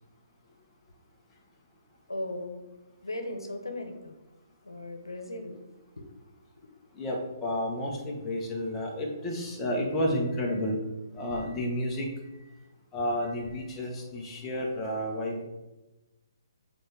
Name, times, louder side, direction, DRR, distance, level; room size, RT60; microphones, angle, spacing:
voice 1, 2.1-2.6 3.0-4.2 4.6-6.1 6.6-6.7, left 1 dB, 90° left, 5 dB, 1.0 m, -38 dB
voice 2, 7.0-10.8 11.1-12.1 12.9-15.4, equal, 15° left, -2 dB, 1.3 m, -31 dB
7.5 x 4.1 x 3.5 m, 1.1 s
figure-of-eight pair, 135°, 2 cm